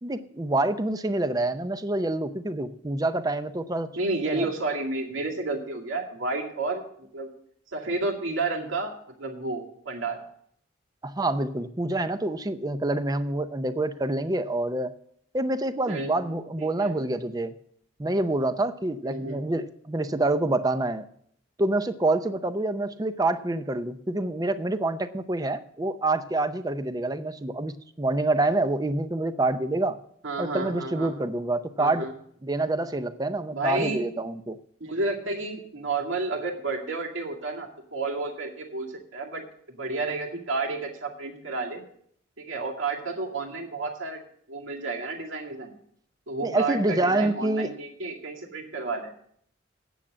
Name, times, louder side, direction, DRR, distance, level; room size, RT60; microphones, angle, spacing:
voice 1, 0.0-3.9 4.3-4.5 11.0-14.9 15.3-17.5 18.0-21.0 21.6-30.0 30.4-32.1 32.4-34.6 46.4-47.7, right 2 dB, 20° right, 11 dB, 0.5 m, -27 dB
voice 2, 4.0-7.3 7.7-8.9 9.2-10.2 15.9-16.2 16.6-16.9 19.0-19.4 30.2-31.1 31.8-32.1 33.5-34.0 34.8-41.8 42.4-44.2 44.5-45.7 46.3-49.1, right 3 dB, 85° right, 0 dB, 2.3 m, -31 dB
9.1 x 7.3 x 7.3 m, 0.66 s
head